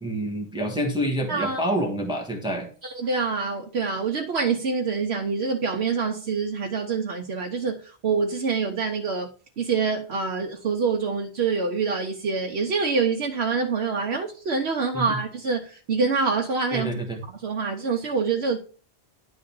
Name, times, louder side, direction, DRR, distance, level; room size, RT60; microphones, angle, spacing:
voice 1, 0.0-2.7 14.9-15.2 16.7-17.2, right 1 dB, 5° right, 1.4 m, -27 dB
voice 2, 1.3-1.6 2.8-9.3 9.6-16.9 17.3-18.6, right 5 dB, 75° right, 1.2 m, -26 dB
11.0 x 3.8 x 7.0 m
omnidirectional pair, 1.1 m